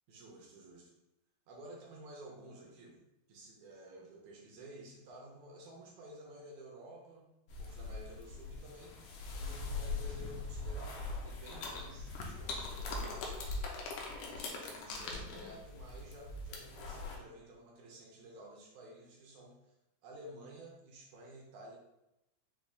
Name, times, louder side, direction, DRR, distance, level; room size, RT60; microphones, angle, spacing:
voice 1, 0.1-0.9 1.5-3.0 3.3-7.3 7.6-13.3 14.0-19.7 20.0-21.8, right 1 dB, 75° right, -2 dB, 1.8 m, -52 dB
sound 1, 7.5-17.2, left 3 dB, 75° left, 2.0 m, -41 dB
6.0 x 2.3 x 3.4 m, 0.89 s
omnidirectional pair, 4.0 m